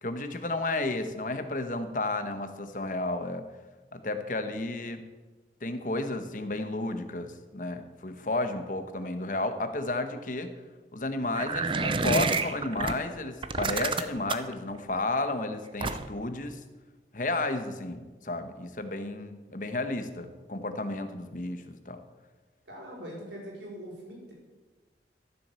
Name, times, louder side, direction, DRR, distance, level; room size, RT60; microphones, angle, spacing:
voice 1, 0.0-3.5 3.9-5.0 5.6-10.5 10.9-16.6 17.1-22.0, left 2 dB, 50° left, 8 dB, 1.1 m, -32 dB
sound 1, 11.4-12.9 13.4-14.5 15.8-16.2, right 4 dB, 30° right, 0.6 m, -28 dB
voice 2, 22.7-24.3, equal, 85° right, -2 dB, 4.9 m, -42 dB
13.5 x 7.5 x 6.9 m, 1.3 s
head